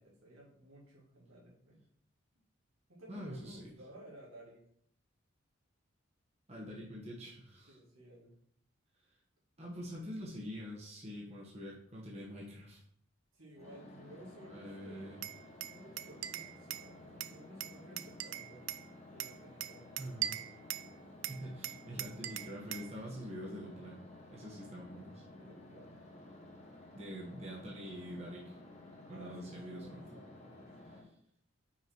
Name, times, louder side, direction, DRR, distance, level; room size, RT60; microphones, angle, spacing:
voice 1, 0.0-1.8 2.9-4.6 7.7-8.4 13.3-15.3 15.7-18.7 19.1-19.9 25.4-26.0 29.1-30.7, right 1 dB, 85° right, -5 dB, 2.5 m, -55 dB
voice 2, 3.1-3.7 6.5-7.8 9.6-12.8 14.5-15.2 20.0-20.4 21.3-24.0 24.3-25.2 26.9-28.6 29.1-30.0, equal, 30° right, -4 dB, 1.2 m, -45 dB
sound 1, 13.5-31.0, left 1 dB, 35° left, 1.1 m, -54 dB
Glass, 15.2-16.9 17.2-18.8 19.2-20.9 21.2-22.9, right 13 dB, 60° right, 0.3 m, -41 dB
5.9 x 4.7 x 4.5 m, 0.68 s
head